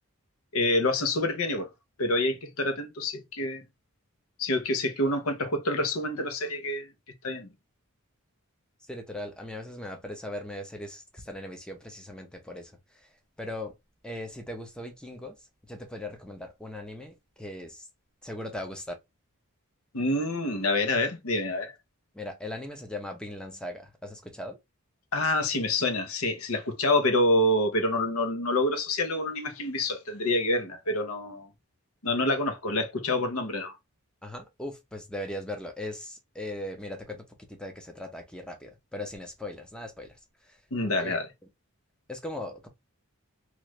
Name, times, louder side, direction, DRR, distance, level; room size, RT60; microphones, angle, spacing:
voice 1, 0.5-1.7 2.0-3.6 4.4-6.9 7.2-7.5 19.9-21.7 25.1-31.5 32.0-33.7 40.7-41.3, left 1 dB, 75° left, 0.8 m, -27 dB
voice 2, 8.9-13.1 13.4-13.7 14.0-15.4 15.7-17.9 18.2-19.0 22.1-24.6 34.2-40.2 40.4-40.6 41.0-41.2 42.1-42.7, left 1 dB, 5° left, 0.6 m, -39 dB
3.1 x 2.5 x 3.1 m
head